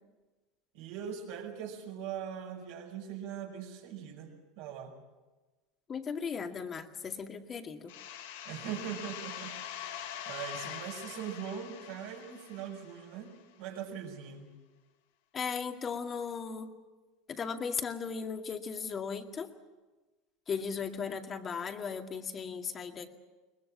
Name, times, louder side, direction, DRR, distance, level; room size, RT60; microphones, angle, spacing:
voice 1, 0.7-4.9 8.4-14.5, right 8 dB, 70° right, 0 dB, 5.5 m, -41 dB
voice 2, 5.9-7.9 15.3-16.7 17.3-19.5 20.5-23.1, left 6 dB, 35° left, 5 dB, 2.1 m, -37 dB
sound 1, 7.9-13.4, left 10 dB, 75° left, 1.7 m, -44 dB
22.5 x 20.0 x 7.5 m, 1.2 s
hypercardioid pair, 90°, 0 cm